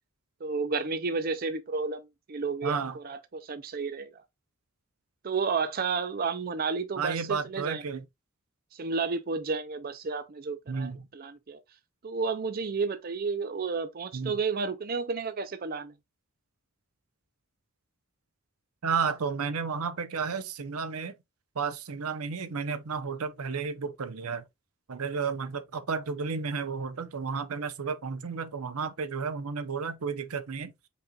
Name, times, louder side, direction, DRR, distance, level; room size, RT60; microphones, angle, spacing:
voice 1, 0.4-4.2 5.2-7.8 8.7-11.6 12.0-15.9, right 4 dB, 45° right, 0.5 m, -32 dB
voice 2, 2.6-3.0 7.0-8.0 10.7-11.0 14.1-14.4 18.8-21.1 21.5-24.4 24.9-30.7, right 5 dB, 85° right, 0.7 m, -32 dB
5.3 x 4.1 x 2.3 m
head